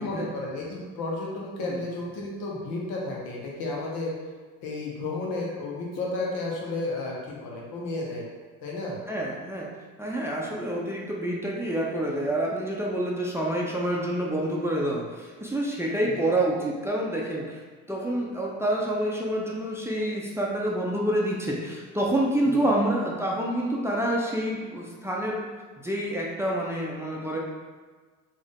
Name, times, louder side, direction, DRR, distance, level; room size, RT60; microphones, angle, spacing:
voice 1, 0.0-4.1 4.6-8.2 8.6-9.0 16.0-16.2 22.4-22.7, left 2 dB, 70° left, -3 dB, 1.1 m, -32 dB
voice 2, 9.1-9.7 10.0-17.6 17.9-25.4 25.8-27.4, right 1 dB, 5° right, -3 dB, 0.6 m, -27 dB
3.5 x 2.7 x 3.6 m, 1.5 s
supercardioid pair, 75°, 38 cm